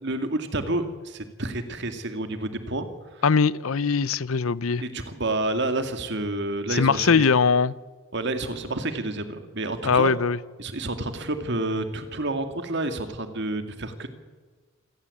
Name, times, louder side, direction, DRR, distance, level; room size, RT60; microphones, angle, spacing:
voice 1, 0.0-2.9 3.1-3.2 4.7-7.2 8.1-10.1 10.6-14.1, right 2 dB, 55° right, 8 dB, 2.2 m, -29 dB
voice 2, 3.2-4.8 6.7-7.8 9.8-10.4, left 5 dB, 90° left, 19 dB, 0.7 m, -21 dB
27.0 x 16.5 x 8.4 m, 1.4 s
head